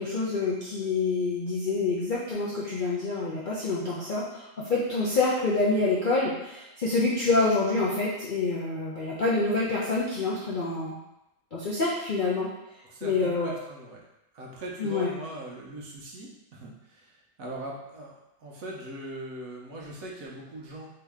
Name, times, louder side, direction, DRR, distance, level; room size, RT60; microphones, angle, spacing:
voice 1, 0.0-11.0 11.5-12.5 13.0-13.5 14.8-15.1, left 3 dB, 75° left, -6 dB, 0.4 m, -27 dB
voice 2, 12.8-14.0 14.3-20.9, right 1 dB, 60° right, -3 dB, 1.1 m, -41 dB
3.9 x 2.8 x 3.5 m, 0.90 s
omnidirectional pair, 1.8 m